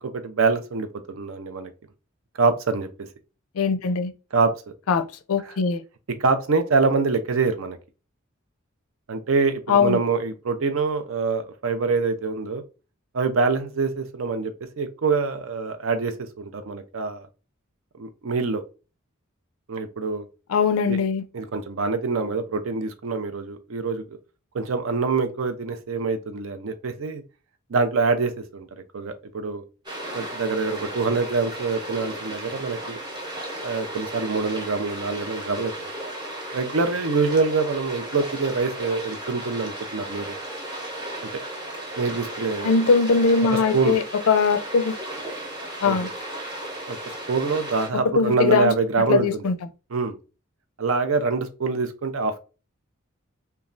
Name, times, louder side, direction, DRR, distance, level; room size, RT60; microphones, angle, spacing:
voice 1, 0.0-1.7 2.4-3.1 4.3-4.5 5.5-5.6 6.2-7.8 9.1-12.6 13.1-14.5 14.8-17.3 18.0-18.6 19.7-20.3 20.8-21.0 21.3-24.0 24.5-27.2 27.7-28.7 28.9-29.6 30.1-33.0 33.6-35.7 36.5-40.3 42.0-42.7 43.5-43.9 45.8-46.1 46.9-49.4 49.9-50.2 50.8-52.4, right 4 dB, 65° right, 0.5 m, -25 dB
voice 2, 3.6-4.1 4.9-5.8 9.7-10.0 20.5-21.2 42.6-45.0 45.8-46.1 48.2-48.7 49.1-49.5, left 5 dB, 80° left, 0.4 m, -21 dB
sound 1, 29.8-47.9, right 1 dB, 20° right, 0.9 m, -35 dB
3.1 x 2.3 x 2.4 m
head